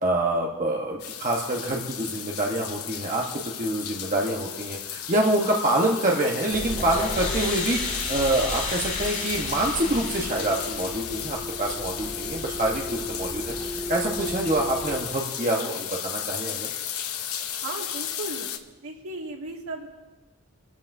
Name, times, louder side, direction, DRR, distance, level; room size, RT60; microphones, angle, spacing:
voice 1, 0.0-3.2 3.6-13.6 13.9-16.7, right 1 dB, 35° right, -2 dB, 1.2 m, -26 dB
sound 1, 1.0-18.6, left 10 dB, 80° left, 0.8 m, -35 dB
sound 2, 6.5-15.0, left 2 dB, 35° left, 2.4 m, -32 dB
voice 2, 17.6-18.5 18.8-19.9, right 2 dB, 75° right, -1 dB, 2.3 m, -35 dB
25.0 x 13.5 x 2.7 m, 1.2 s
head